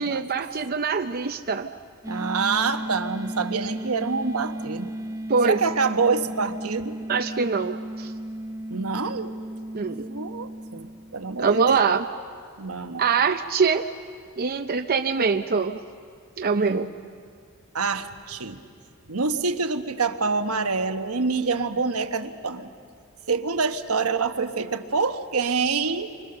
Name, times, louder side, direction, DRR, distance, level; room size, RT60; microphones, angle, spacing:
voice 1, 0.0-1.7 5.3-5.6 7.1-8.1 9.7-10.1 11.4-12.0 13.0-13.9 14.4-15.8 16.4-16.9, right 5 dB, 45° right, 7 dB, 0.6 m, -23 dB
sound 1, 2.0-11.8, right 1 dB, 15° right, 0.8 m, -35 dB
voice 2, 2.1-4.9 5.4-7.0 8.7-9.3 10.1-11.8 12.6-13.0 16.6-16.8 17.7-18.6 19.1-22.7 23.3-26.1, right 4 dB, 80° right, 8 dB, 1.2 m, -26 dB
28.5 x 25.0 x 6.9 m, 2.2 s
head